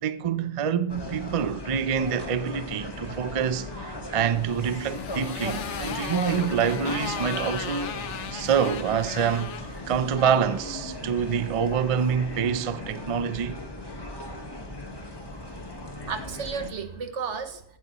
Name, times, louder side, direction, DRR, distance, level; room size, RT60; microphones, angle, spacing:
voice 1, 0.0-7.9 8.3-9.6 9.9-13.6, right 7 dB, 40° right, 0.5 m, -26 dB
sound 1, 0.9-16.7, left 1 dB, 20° left, 1.4 m, -37 dB
Motorcycle, 4.3-10.7, left 8 dB, 90° left, 1.1 m, -36 dB
voice 2, 16.0-17.6, right 5 dB, 85° right, 1.4 m, -34 dB
15.5 x 9.2 x 3.0 m
omnidirectional pair, 1.2 m